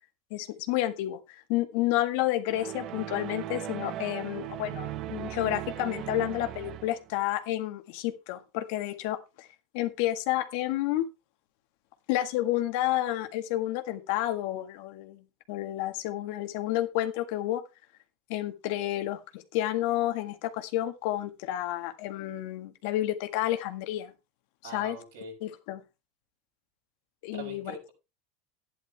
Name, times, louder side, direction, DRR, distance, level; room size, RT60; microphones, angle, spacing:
voice 1, 0.3-9.5 9.7-11.1 12.1-17.6 18.3-24.1 24.6-25.0 25.4-25.8 27.2-27.7, left 14 dB, 70° left, 8 dB, 1.7 m, -30 dB
sound 1, 2.5-7.1, right 13 dB, 45° right, 0.6 m, -38 dB
voice 2, 24.6-25.3 27.3-27.9, right 3 dB, 85° right, 1 dB, 7.1 m, -42 dB
12.0 x 10.5 x 3.4 m, 0.27 s
supercardioid pair, 120°, 0 cm